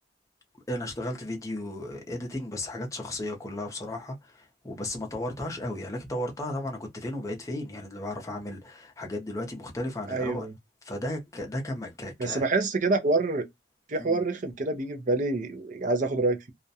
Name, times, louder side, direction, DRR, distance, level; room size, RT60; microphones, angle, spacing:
voice 1, 0.7-10.5 10.8-12.4 14.0-14.2, left 1 dB, 15° left, 0.6 m, -34 dB
voice 2, 10.1-10.5 12.2-13.5 13.9-16.5, right 3 dB, 45° right, 0.5 m, -27 dB
2.3 x 2.1 x 2.6 m
head